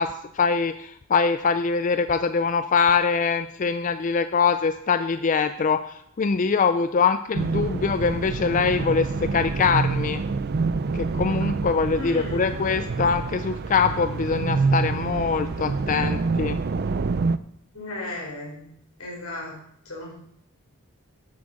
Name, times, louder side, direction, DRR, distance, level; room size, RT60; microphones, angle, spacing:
voice 1, 0.0-10.2 10.9-16.6, left 5 dB, 35° left, 10 dB, 0.4 m, -23 dB
sound 1, 7.3-17.4, right 4 dB, 45° right, 0.5 m, -27 dB
voice 2, 11.9-12.5 17.7-18.7 19.0-20.3, left 2 dB, 80° left, -2 dB, 5.0 m, -36 dB
9.7 x 8.4 x 6.3 m, 0.70 s
head